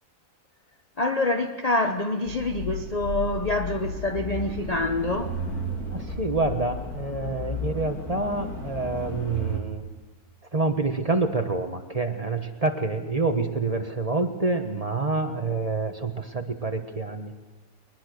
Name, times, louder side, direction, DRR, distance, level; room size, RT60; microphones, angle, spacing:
voice 1, 1.0-5.4, left 2 dB, 35° left, 6 dB, 0.6 m, -26 dB
sound 1, 2.3-9.6, left 1 dB, 60° left, 3.4 m, -33 dB
voice 2, 5.9-9.9 10.5-17.3, right 3 dB, 25° right, 6 dB, 1.2 m, -27 dB
21.5 x 21.5 x 6.6 m, 1.2 s
omnidirectional pair, 1.9 m